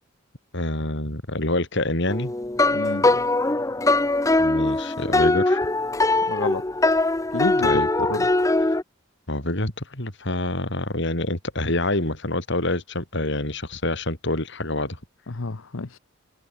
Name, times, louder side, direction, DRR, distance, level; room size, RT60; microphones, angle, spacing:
voice 1, 0.5-2.3 4.4-5.7 7.6-8.1 9.3-15.0, left 2 dB, 60° left, 4.2 m, -26 dB
sound 1, 2.1-8.8, left 2 dB, 15° left, 0.7 m, -21 dB
voice 2, 2.7-3.2 6.3-6.6 7.3-7.8 8.1-8.3 15.3-16.0, left 3 dB, 80° left, 1.0 m, -29 dB
head